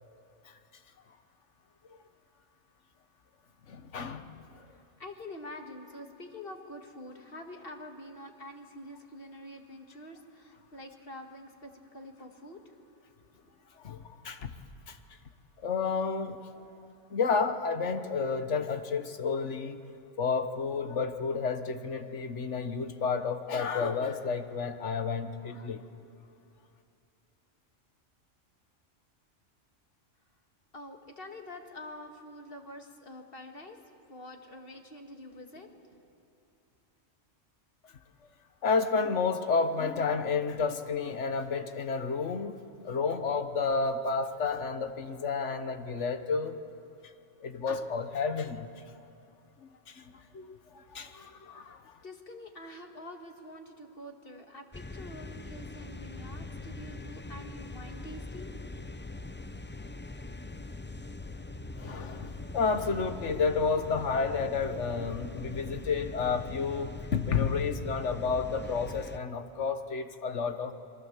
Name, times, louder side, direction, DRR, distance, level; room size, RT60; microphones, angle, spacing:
voice 1, 3.7-4.7 13.8-14.5 14.9-15.0 15.6-16.6 17.1-19.8 20.2-25.8 37.8-37.9 38.6-42.6 42.8-46.6 47.0-47.1 47.4-48.7 49.6-52.0 61.8-70.7, left 5 dB, 70° left, 8 dB, 1.5 m, -31 dB
voice 2, 4.7-12.6 13.3-13.5 30.7-33.8 34.1-36.0 52.0-58.6, left 1 dB, 45° left, 3 dB, 2.1 m, -46 dB
sound 1, 54.7-69.2, left 3 dB, 15° left, 0.4 m, -42 dB
28.0 x 23.5 x 7.4 m, 2.7 s
omnidirectional pair, 1.3 m